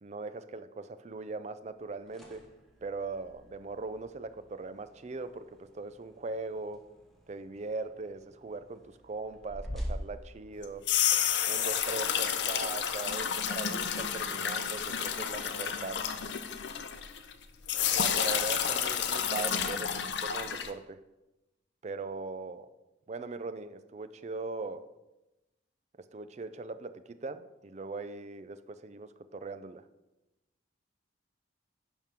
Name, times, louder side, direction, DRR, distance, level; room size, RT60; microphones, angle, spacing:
voice 1, 0.0-2.5 2.8-6.8 7.3-10.9 11.5-16.1 17.9-21.0 21.8-22.7 23.1-24.9 26.1-29.9, right 3 dB, 35° right, 12 dB, 0.4 m, -40 dB
sound 1, 1.8-11.2, equal, ahead, 1.1 m, -46 dB
sound 2, 10.6-17.3 17.7-20.7, left 8 dB, 65° left, 0.6 m, -30 dB
10.5 x 3.7 x 5.8 m, 1.0 s
head